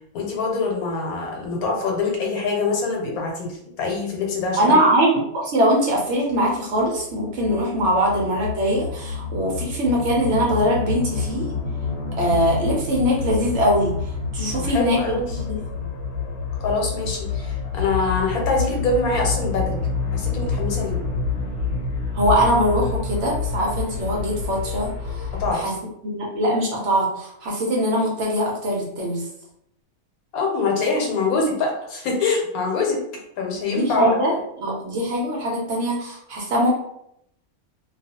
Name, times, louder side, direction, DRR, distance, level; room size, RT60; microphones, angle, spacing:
voice 1, 0.1-4.8 14.5-15.4 16.6-19.8 20.1-21.0 25.4-25.6 30.3-33.0 33.4-34.1, left 3 dB, 80° left, 0 dB, 1.2 m, -24 dB
voice 2, 4.6-11.5 12.2-13.9 14.3-15.9 22.1-25.7 26.0-29.2 33.6-34.3 34.6-36.7, equal, 60° right, -2 dB, 0.8 m, -22 dB
sound 1, 6.3-25.5, left 4 dB, 60° left, 0.9 m, -28 dB
2.4 x 2.3 x 2.7 m, 0.75 s
omnidirectional pair, 1.5 m